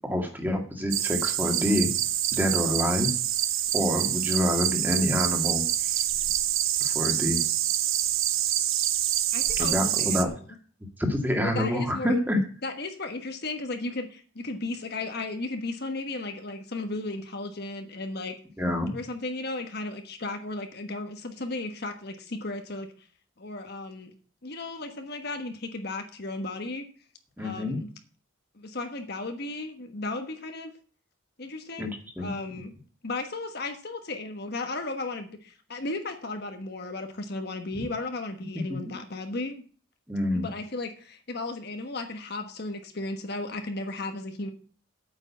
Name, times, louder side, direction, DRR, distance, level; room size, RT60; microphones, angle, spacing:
voice 1, 0.0-1.9 2.3-3.1 3.7-5.9 6.8-7.4 9.6-10.3 11.0-12.4 18.6-19.0 27.4-27.8 31.8-32.3 37.7-37.8 38.8-38.9 40.1-40.5, left 1 dB, 10° right, 3 dB, 2.0 m, -27 dB
sound 1, 0.9-10.2, right 12 dB, 85° right, 1.0 m, -26 dB
voice 2, 9.3-10.6 11.4-12.1 12.6-18.3 18.9-22.9 23.4-24.1 24.4-26.8 27.4-27.9 28.5-30.7 31.4-31.9 32.2-32.7 33.0-39.6 40.3-44.5, left 2 dB, 50° left, 6 dB, 1.3 m, -35 dB
8.9 x 6.6 x 8.5 m, 0.42 s
head